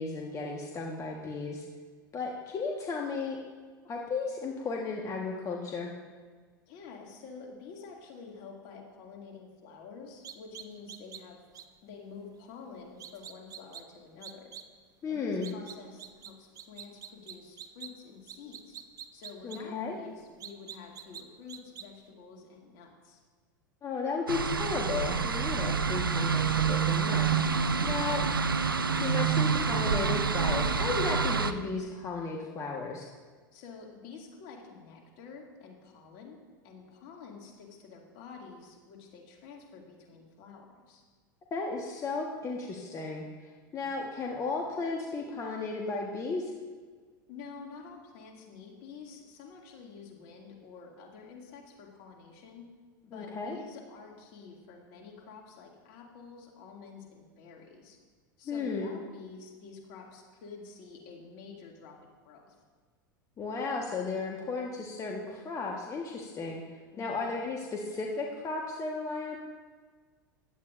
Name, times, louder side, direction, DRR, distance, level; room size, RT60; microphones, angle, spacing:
voice 1, 0.0-1.7 2.1-3.4 3.8-5.9 15.0-15.5 19.4-20.0 23.8-28.2 29.0-33.1 41.5-43.2 43.7-46.5 53.1-53.6 58.4-58.9 63.4-69.4, left 4 dB, 30° left, 0 dB, 1.4 m, -34 dB
voice 2, 6.7-11.4 11.8-14.5 15.1-18.8 19.1-23.2 27.7-28.2 33.5-41.0 44.0-44.1 47.3-52.7 53.0-58.0 58.4-62.6 66.9-67.3, left 5 dB, 50° left, 0 dB, 2.4 m, -49 dB
sound 1, 10.2-11.2 11.5-11.6 13.0-13.8 14.2-14.6 15.4-16.3 16.6-17.9 18.3-19.6 20.4-21.2 21.5-21.8, right 10 dB, 30° right, 0.7 m, -44 dB
sound 2, 24.3-31.5, right 6 dB, 90° right, 0.5 m, -27 dB
15.5 x 10.5 x 2.6 m, 1.5 s
figure-of-eight pair, 85°, 11 cm